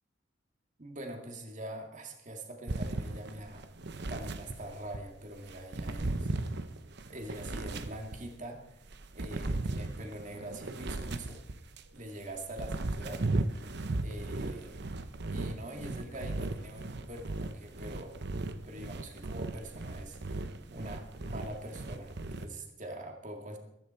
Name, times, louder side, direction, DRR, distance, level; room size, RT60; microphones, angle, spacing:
voice 1, 0.8-3.7 4.1-6.3 7.1-8.9 9.1-11.4 11.9-13.2 14.0-14.8 15.3-18.2 18.5-23.6, right 1 dB, 40° right, 3 dB, 2.2 m, -44 dB
sound 1, 2.7-5.1 5.5-8.4 8.9-11.9 12.4-22.5, right 2 dB, 65° right, 0.9 m, -37 dB
14.5 x 14.0 x 4.4 m, 0.84 s
head